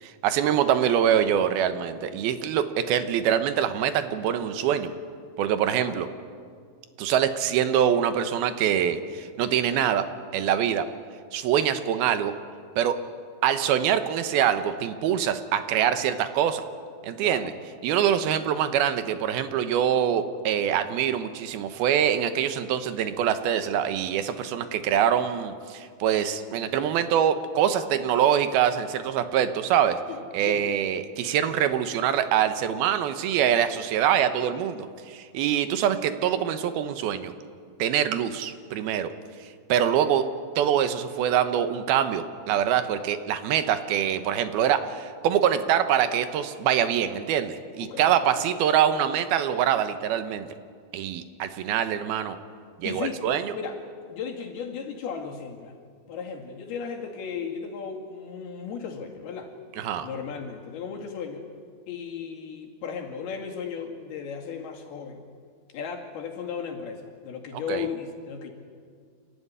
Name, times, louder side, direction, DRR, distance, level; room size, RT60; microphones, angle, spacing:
voice 1, 0.0-4.9 5.4-6.1 7.0-10.1 10.3-10.9 11.3-12.3 12.8-13.0 13.4-16.6 17.0-17.5 17.8-30.0 30.3-37.3 37.8-39.1 39.7-40.2 40.6-50.5 50.9-52.4 52.8-53.5 59.8-60.1 67.7-67.9, right 9 dB, 85° right, 10 dB, 2.9 m, -24 dB
voice 2, 5.7-6.0 17.2-17.5 18.2-18.4 30.1-30.8 47.8-48.5 52.8-53.2 53.5-53.8 54.1-55.7 56.1-59.5 60.0-61.5 61.9-65.2 65.7-68.5, left 6 dB, 85° left, 1 dB, 4.2 m, -36 dB
29.5 x 13.0 x 9.7 m, 2.1 s
omnidirectional pair, 4.4 m